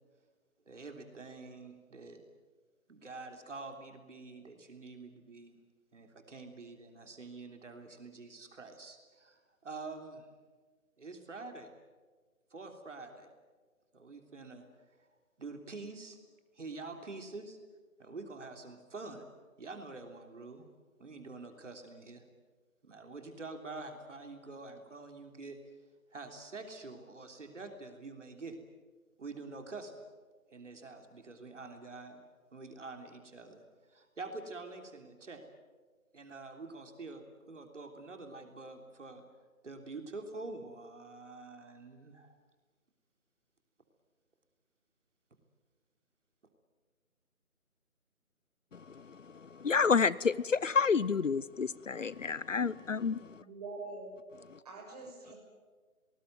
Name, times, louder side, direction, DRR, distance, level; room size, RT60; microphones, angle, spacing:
voice 1, 0.7-2.2 2.9-5.6 5.9-10.3 11.0-11.7 12.5-13.3 13.9-15.1 15.4-16.2 16.5-17.6 18.0-19.2 19.6-20.6 21.0-22.2 22.8-25.6 26.1-28.6 29.2-30.0 30.5-32.2 32.5-33.6 33.9-35.4 36.1-39.2 39.6-42.4, right 3 dB, 55° right, 3.4 m, -46 dB
voice 2, 48.7-53.4 54.5-54.6, left 5 dB, 60° left, 0.8 m, -30 dB
voice 3, 53.4-54.1 54.6-55.3, right 3 dB, 25° right, 6.2 m, -44 dB
25.5 x 20.0 x 9.3 m
figure-of-eight pair, 165°, 43 cm